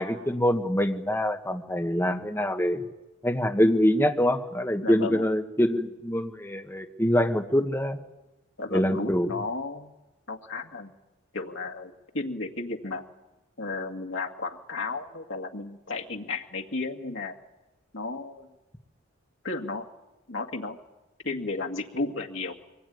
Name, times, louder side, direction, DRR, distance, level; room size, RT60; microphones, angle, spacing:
voice 1, 0.0-2.9 3.2-8.0 8.7-9.3, equal, 10° left, 4 dB, 1.4 m, -25 dB
voice 2, 4.8-5.3 8.6-9.9 10.3-10.9 11.3-13.0 13.6-17.3 17.9-18.5 19.4-19.8 20.3-20.8 21.2-22.5, left 3 dB, 75° left, 1 dB, 2.1 m, -33 dB
23.5 x 20.5 x 9.5 m, 1.0 s
head